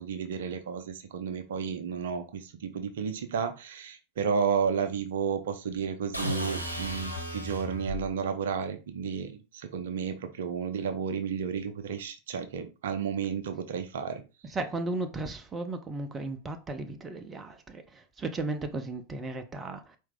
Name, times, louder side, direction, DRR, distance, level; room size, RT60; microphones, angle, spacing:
voice 1, 0.0-14.2, right 6 dB, 60° right, 0.6 m, -32 dB
sound 1, 6.1-8.1, equal, 85° right, 1.0 m, -34 dB
voice 2, 14.5-20.0, right 2 dB, 20° right, 0.6 m, -35 dB
4.5 x 2.7 x 3.5 m
figure-of-eight pair, 90°, 0 cm